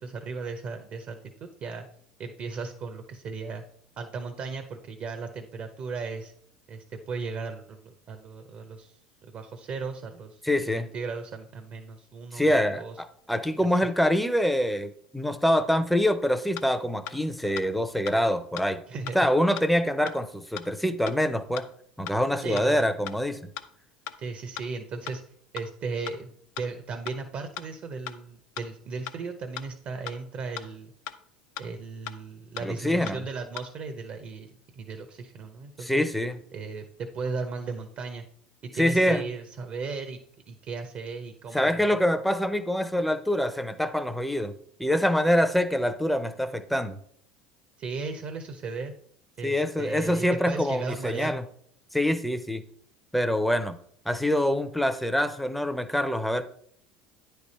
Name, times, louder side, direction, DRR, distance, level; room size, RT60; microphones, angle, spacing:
voice 1, 0.0-1.9 2.2-3.6 4.0-6.3 6.7-13.0 18.9-19.3 22.4-22.9 24.2-25.2 25.5-30.9 31.6-36.1 36.5-38.3 38.6-40.2 40.5-41.8 47.8-48.9 49.4-51.3, right 4 dB, 45° right, 6 dB, 0.8 m, -36 dB
voice 2, 10.4-10.9 12.3-18.8 19.1-21.7 22.0-23.4 32.6-33.2 35.8-36.4 38.8-39.3 41.5-44.5 44.8-47.0 49.4-51.4 51.9-52.6 53.1-53.8 54.1-56.4, equal, ahead, 10 dB, 0.6 m, -25 dB
sound 1, 16.6-16.7 17.1-17.2 17.6-17.7 18.1-18.2 18.6-18.7 19.1-19.2 19.6-19.7 20.1-20.2 20.6-20.7 21.1-21.2 21.6-21.7 22.1-22.2 22.6-22.7 23.1-23.2 23.6-23.7 24.1-24.2 24.6-24.7 25.1-25.2 25.6-25.7 26.1-26.2 26.6-26.7 27.1-27.2 27.6-27.7 28.1-28.2 28.6-28.7 29.1-29.2 29.6-29.7 30.1-30.2 30.6-30.7 31.1-31.2 31.6-31.7 32.1-32.2 32.6-32.7 33.1-33.2 33.6-33.7, left 11 dB, 65° left, 0.5 m, -37 dB
9.6 x 3.4 x 4.2 m, 0.64 s
hypercardioid pair, 80°, 4 cm